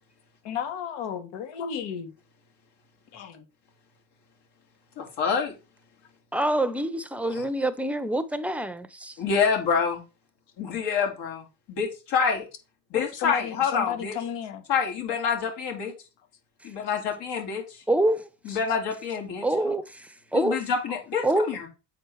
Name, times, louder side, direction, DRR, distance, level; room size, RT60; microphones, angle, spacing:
voice 1, 0.4-2.1 3.1-3.4 13.0-14.6 18.5-18.6, left 8 dB, 85° left, 1.9 m, -33 dB
voice 2, 5.0-5.5 7.3-7.4 9.2-10.0 10.6-12.5 12.9-14.2 14.7-15.9 16.6-17.8 18.4-19.4 20.3-21.7, left 6 dB, 70° left, 3.3 m, -27 dB
voice 3, 6.3-9.1 17.9-18.3 19.4-20.6 21.2-21.5, right 1 dB, 5° right, 0.5 m, -26 dB
7.7 x 4.4 x 4.6 m
cardioid pair, 135°, 42 cm